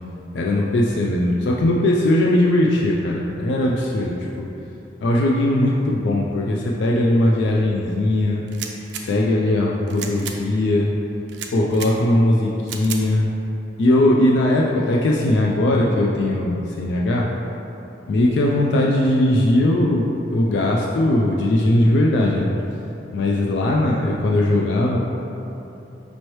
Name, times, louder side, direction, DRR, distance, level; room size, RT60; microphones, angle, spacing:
voice 1, 0.3-4.5 5.0-8.4 8.9-10.9 11.5-13.3 13.8-17.3 18.1-22.5 23.1-25.0, left 1 dB, 75° left, -2 dB, 0.3 m, -19 dB
sound 1, 8.5-9.0 9.9-10.4 11.3-11.9 12.7-13.0, right 8 dB, 75° right, 0.4 m, -33 dB
5.3 x 3.0 x 3.0 m, 3.0 s
head